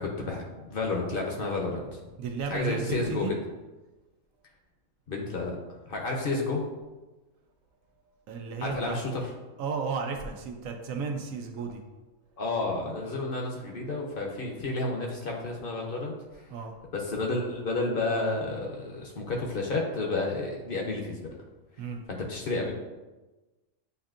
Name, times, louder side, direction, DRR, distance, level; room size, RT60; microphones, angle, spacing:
voice 1, 0.0-2.0 2.5-3.4 5.1-5.6 5.9-6.7 8.6-9.1 12.4-16.5 16.9-21.2 22.1-22.7, left 2 dB, 50° left, 0 dB, 0.8 m, -31 dB
voice 2, 2.2-3.3 8.3-9.0 9.6-11.8 16.5-16.8 21.8-22.0, right 4 dB, 90° right, 4 dB, 1.1 m, -33 dB
7.9 x 2.6 x 2.4 m, 1.1 s
omnidirectional pair, 1.4 m